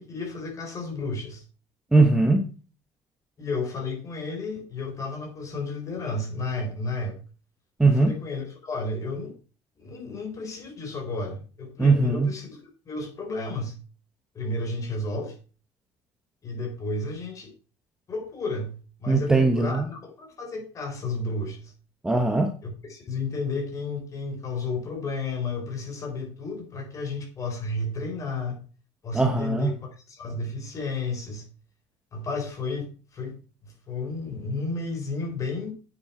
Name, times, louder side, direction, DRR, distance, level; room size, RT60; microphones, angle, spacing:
voice 1, 0.0-1.4 3.4-7.2 7.8-9.3 9.8-12.6 12.9-13.8 14.3-15.4 16.4-17.5 18.1-21.7 22.6-28.6 29.0-31.5 32.1-33.3 33.6-35.7, left 3 dB, 30° left, 4.3 m, -32 dB
voice 2, 1.9-2.5 7.8-8.1 11.8-12.3 19.1-19.8 22.0-22.5 29.1-29.7, right 3 dB, 5° right, 1.1 m, -20 dB
10.0 x 8.8 x 4.4 m
cardioid pair, 150°, 11 cm